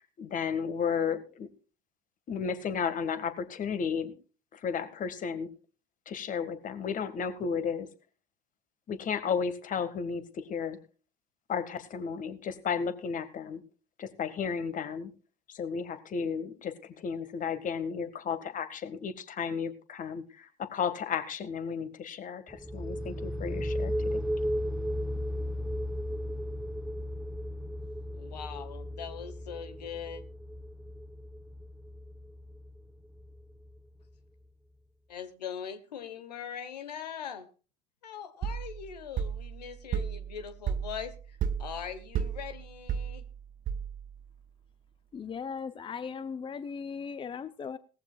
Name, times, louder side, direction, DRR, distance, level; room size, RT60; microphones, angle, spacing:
voice 1, 0.2-1.5 2.3-4.1 4.5-5.5 6.1-7.9 8.9-10.8 11.5-13.6 14.0-15.1 15.5-24.2, left 6 dB, 40° left, 11 dB, 1.9 m, -33 dB
sound 1, 22.5-34.0, equal, 5° right, 1.0 m, -35 dB
voice 2, 28.2-30.2 35.1-37.5 38.0-43.2, left 8 dB, 85° left, 10 dB, 1.3 m, -41 dB
sound 2, 38.4-44.2, right 7 dB, 40° right, 0.8 m, -34 dB
voice 3, 45.1-47.8, left 6 dB, 25° left, 14 dB, 0.7 m, -38 dB
18.5 x 14.5 x 2.4 m, 0.35 s
hypercardioid pair, 70°, 20 cm